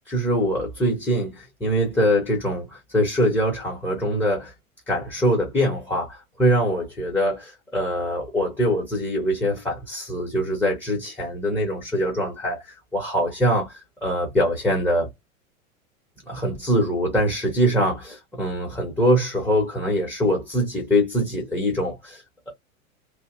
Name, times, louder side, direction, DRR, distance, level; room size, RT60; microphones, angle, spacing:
voice 1, 0.1-4.5 4.9-15.1 16.3-22.5, equal, 5° left, 0.7 m, -23 dB
2.6 x 2.0 x 2.3 m
figure-of-eight pair, 95°, 42 cm